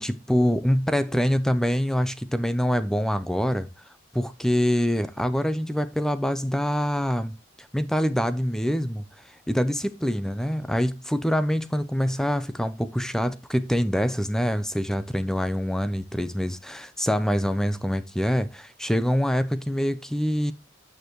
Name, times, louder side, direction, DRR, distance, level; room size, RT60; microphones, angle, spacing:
voice 1, 0.0-3.7 4.1-7.3 7.7-9.0 9.5-20.5, equal, 5° left, 0.5 m, -25 dB
9.2 x 6.5 x 3.0 m
head